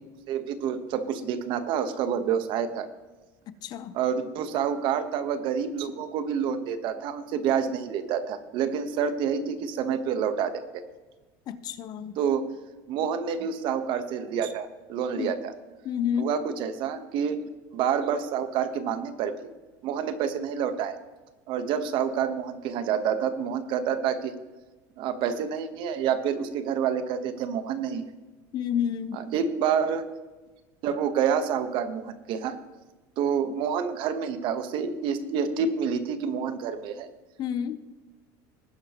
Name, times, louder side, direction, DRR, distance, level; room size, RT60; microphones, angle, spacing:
voice 1, 0.3-2.9 3.9-10.8 12.2-12.5 12.9-15.5 16.2-17.4 17.7-19.5 19.8-21.0 21.5-24.3 25.0-28.0 29.1-30.1 30.8-32.6 33.2-37.1, right 7 dB, 55° right, 10 dB, 1.2 m, -28 dB
voice 2, 3.5-4.0 11.5-12.2 15.2-15.4 15.8-16.4 28.5-29.3 37.4-37.8, left 9 dB, 45° left, 13 dB, 0.8 m, -30 dB
19.0 x 9.9 x 3.0 m, 1.2 s
supercardioid pair, 130°, 10 cm